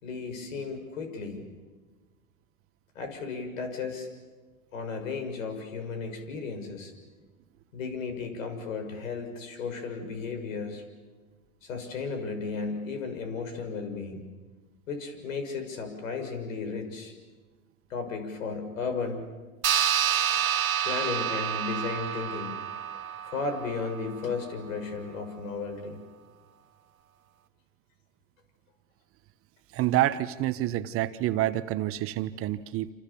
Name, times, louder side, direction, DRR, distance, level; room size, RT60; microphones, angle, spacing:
voice 1, 0.0-1.4 2.9-4.1 4.7-6.9 7.7-10.8 11.6-14.2 14.9-17.1 17.9-19.3 20.8-22.5 23.2-26.0, left 4 dB, 70° left, 6 dB, 6.5 m, -34 dB
sound 1, 19.6-24.5, right 9 dB, 90° right, 1.7 m, -29 dB
voice 2, 29.7-32.9, right 14 dB, 35° right, 13 dB, 1.1 m, -28 dB
28.5 x 28.0 x 7.1 m, 1.3 s
hypercardioid pair, 110°, 41 cm